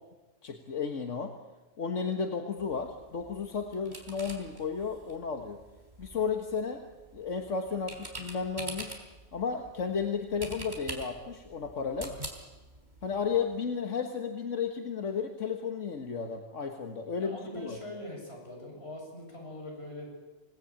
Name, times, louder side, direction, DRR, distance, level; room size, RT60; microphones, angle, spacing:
voice 1, 0.4-1.3 1.8-5.6 6.0-6.8 7.1-9.0 9.3-12.2 13.0-17.8, left 5 dB, 90° left, 4 dB, 1.9 m, -33 dB
sound 1, 2.6-13.6, right 1 dB, 40° right, 4.1 m, -46 dB
voice 2, 17.0-20.1, left 1 dB, 60° left, 0 dB, 8.3 m, -43 dB
28.0 x 19.0 x 8.9 m, 1.2 s
omnidirectional pair, 1.2 m